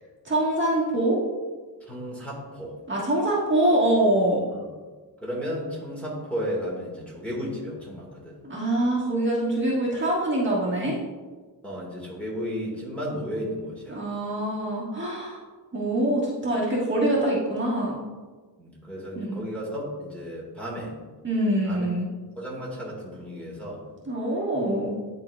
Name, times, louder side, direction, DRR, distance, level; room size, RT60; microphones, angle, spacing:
voice 1, 0.2-1.2 2.9-4.4 8.4-11.0 13.9-15.4 15.7-18.0 19.1-19.4 21.2-22.1 24.1-24.9, right 1 dB, 30° right, -6 dB, 1.5 m, -24 dB
voice 2, 1.9-2.8 4.5-4.7 5.2-8.4 11.6-14.0 18.6-20.9 21.7-21.9 22.4-23.8, equal, 5° left, -6 dB, 1.8 m, -33 dB
10.5 x 3.9 x 2.3 m, 1.4 s
cardioid pair, 105°, 40 cm